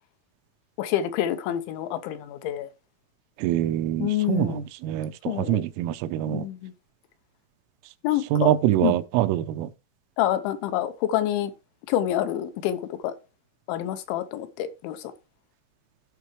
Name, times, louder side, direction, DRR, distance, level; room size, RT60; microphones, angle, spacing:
voice 1, 0.8-2.7 4.0-4.6 5.3-5.6 6.3-6.7 8.0-8.5 8.8-9.0 10.2-11.5 11.9-13.1 13.7-15.1, left 12 dB, 80° left, 2.8 m, -27 dB
voice 2, 3.4-6.5 8.3-9.7, right 13 dB, 85° right, 3.2 m, -25 dB
16.5 x 5.7 x 3.0 m
omnidirectional pair, 5.8 m